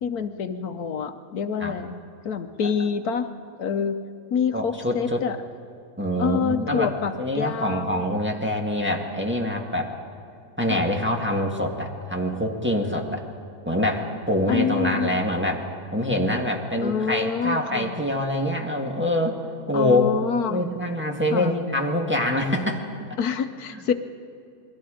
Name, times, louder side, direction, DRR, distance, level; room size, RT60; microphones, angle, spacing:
voice 1, 0.0-3.3 3.6-4.0 4.3-5.4 6.2-8.2 10.7-10.9 14.5-15.2 16.8-18.0 19.7-20.7 21.3-21.6 23.2-23.9, left 6 dB, 75° left, 8 dB, 1.3 m, -27 dB
voice 2, 4.5-5.2 6.0-6.9 7.2-9.9 10.6-13.2 13.6-15.6 15.9-19.4 19.7-20.1 20.5-22.8 23.7-23.8, left 1 dB, 5° right, 0 dB, 1.7 m, -25 dB
28.5 x 21.5 x 5.1 m, 2.5 s
omnidirectional pair, 1.6 m